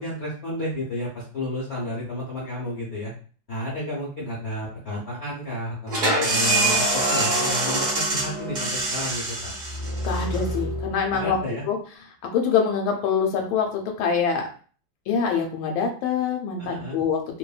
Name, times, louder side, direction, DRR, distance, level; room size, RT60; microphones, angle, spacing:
voice 1, 0.0-3.1 3.5-9.5 11.1-11.6 16.6-17.0, left 1 dB, 65° left, -5 dB, 0.6 m, -32 dB
sound 1, 5.9-11.3, right 1 dB, 55° right, 0.9 m, -25 dB
voice 2, 10.0-11.4 11.7-11.8 12.3-14.5 15.1-17.4, left 6 dB, 90° left, 2 dB, 1.4 m, -24 dB
3.1 x 2.1 x 2.3 m, 0.41 s
omnidirectional pair, 2.1 m